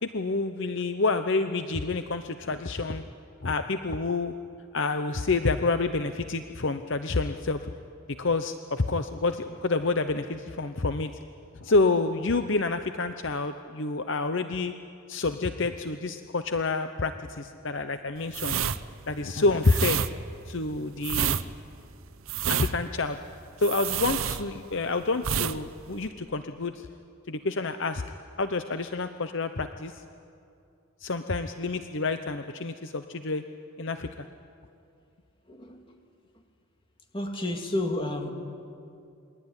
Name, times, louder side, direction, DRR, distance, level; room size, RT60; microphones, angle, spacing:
voice 1, 0.0-3.0 3.4-4.3 4.7-7.7 8.1-11.1 11.5-14.7 15.1-18.6 19.1-20.0 20.5-21.4 22.5-23.2 23.6-26.9 27.3-28.0 28.4-29.9 31.0-33.4 33.8-34.3, left 3 dB, 55° left, 9 dB, 0.8 m, -28 dB
sound 1, 18.3-24.9 25.2-25.6 25.8-26.1, right 8 dB, 65° right, 0.9 m, -29 dB
voice 2, 35.5-35.9 37.1-38.3, left 1 dB, 20° left, 3 dB, 2.6 m, -30 dB
27.5 x 21.5 x 9.9 m, 2.5 s
head